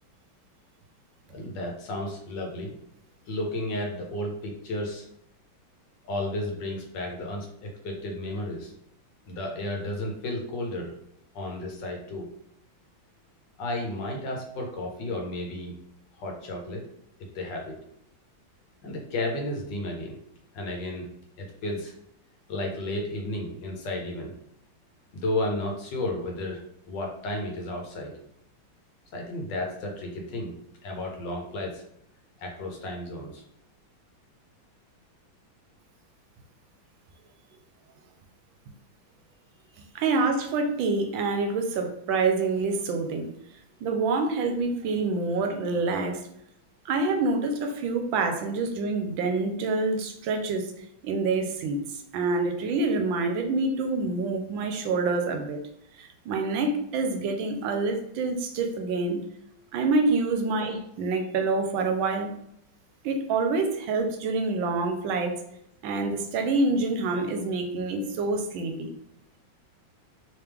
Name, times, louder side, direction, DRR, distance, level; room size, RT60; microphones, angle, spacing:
voice 1, 1.3-2.7 3.3-5.1 6.1-8.7 9.3-10.9 11.3-12.3 13.6-15.7 16.2-16.8 17.3-17.7 18.8-20.2 20.5-21.1 21.4-21.9 22.5-24.3 25.1-26.6 26.9-28.1 29.1-30.5 30.8-31.8 32.4-33.4, left 1 dB, 70° left, 1 dB, 1.4 m, -33 dB
voice 2, 39.9-43.3 43.8-46.2 46.8-50.7 51.0-55.6 56.0-59.2 59.7-62.3 63.0-65.4 65.8-68.9, right 3 dB, 80° right, 5 dB, 1.3 m, -27 dB
3.4 x 3.1 x 3.4 m, 0.73 s
omnidirectional pair, 2.1 m